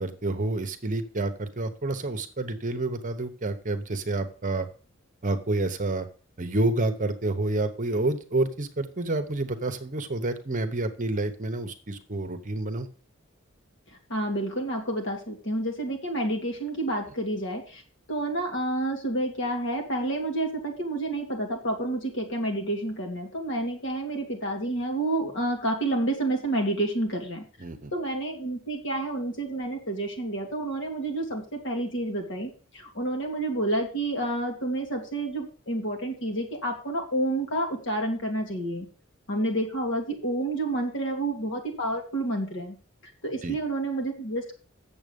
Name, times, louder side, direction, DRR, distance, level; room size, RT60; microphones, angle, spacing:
voice 1, 0.0-4.7 5.2-6.1 6.4-12.9 27.6-27.9 43.4-43.6, right 2 dB, 40° right, 8 dB, 1.0 m, -29 dB
voice 2, 14.1-17.8 18.1-27.4 27.9-38.9 39.3-42.8 43.2-44.6, right 1 dB, 65° left, 2 dB, 2.5 m, -29 dB
8.0 x 7.1 x 5.2 m, 0.38 s
head